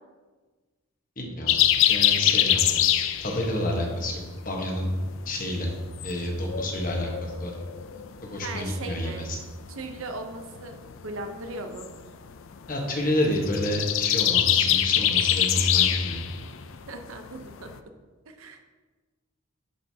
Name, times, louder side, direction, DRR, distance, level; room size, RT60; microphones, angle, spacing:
voice 1, 1.2-1.6 1.9-2.8 3.2-4.2 4.4-4.9 5.2-5.7 6.0-7.5 8.2-9.4 12.7-16.3, left 1 dB, 40° left, 0 dB, 1.2 m, -29 dB
sound 1, 1.5-3.7 4.0-4.5 4.8-9.0 9.3-9.5 9.8-17.8, left 11 dB, 65° left, 0.4 m, -24 dB
voice 2, 8.4-9.2 9.7-10.8 11.0-11.9 16.9-17.7 18.3-18.6, right 2 dB, 70° right, 6 dB, 0.8 m, -37 dB
10.5 x 5.4 x 2.8 m, 1.3 s
head